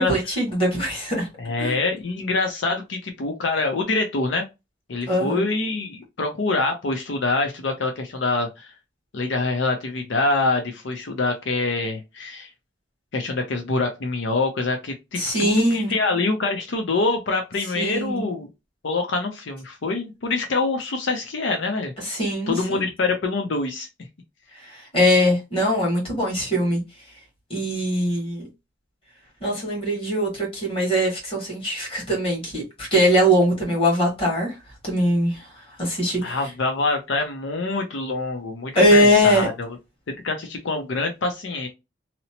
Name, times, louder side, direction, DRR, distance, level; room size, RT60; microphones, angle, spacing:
voice 1, 0.0-1.3 1.6-1.7 5.1-5.4 15.2-15.9 17.7-18.2 22.0-22.8 24.7-26.8 27.5-28.5 29.4-34.5 34.8-35.5 35.8-36.4 38.7-39.5, equal, 30° left, 1.5 m, -21 dB
voice 2, 1.4-4.5 4.9-8.7 9.1-12.5 13.1-18.5 18.8-21.9 22.5-23.9 36.2-39.8 40.2-41.7, left 3 dB, 85° left, 0.6 m, -25 dB
2.8 x 2.0 x 2.8 m
head